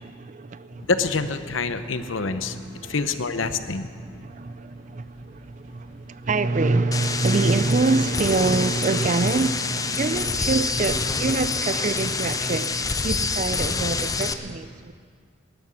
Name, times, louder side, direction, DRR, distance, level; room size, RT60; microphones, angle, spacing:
voice 1, 0.0-0.9 2.3-2.9 4.0-14.9, right 3 dB, 40° right, 0.5 m, -25 dB
sound 1, 0.7-13.6, right 1 dB, 80° right, 5.4 m, -49 dB
voice 2, 0.9-2.6 2.9-3.9, left 4 dB, 75° left, 0.9 m, -26 dB
sound 2, 6.9-14.3, left 4 dB, 15° left, 0.6 m, -27 dB
19.0 x 11.5 x 6.3 m
head